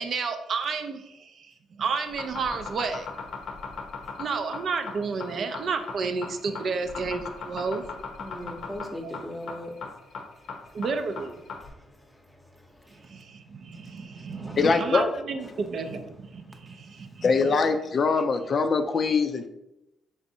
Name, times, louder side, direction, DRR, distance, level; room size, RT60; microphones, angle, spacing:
voice 1, 0.0-3.1 4.2-7.8 9.0-9.1 10.7-11.4 13.0-17.2, right 4 dB, 55° right, 0.4 m, -31 dB
sound 1, 2.0-11.7, left 5 dB, 70° left, 0.7 m, -37 dB
voice 2, 8.2-9.7 12.9-13.0 14.2-14.8 15.5-15.6, equal, 5° left, 0.7 m, -39 dB
voice 3, 14.6-15.1 17.2-19.5, left 4 dB, 45° left, 0.3 m, -23 dB
4.0 x 3.4 x 2.7 m
cardioid pair, 90°, 0 cm